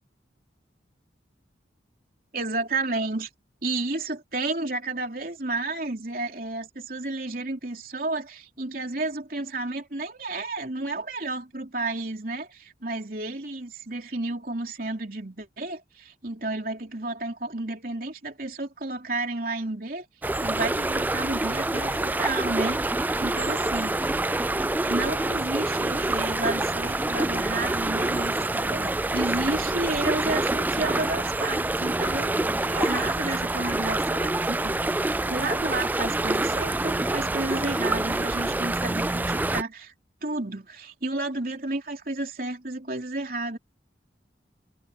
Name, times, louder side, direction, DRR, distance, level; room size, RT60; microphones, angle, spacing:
voice 1, 2.3-3.3 3.6-20.1 20.4-24.4 24.8-39.9 40.2-43.6, right 2 dB, 50° right, 3.5 m, -32 dB
sound 1, 20.2-39.6, right 2 dB, 10° right, 0.3 m, -26 dB
head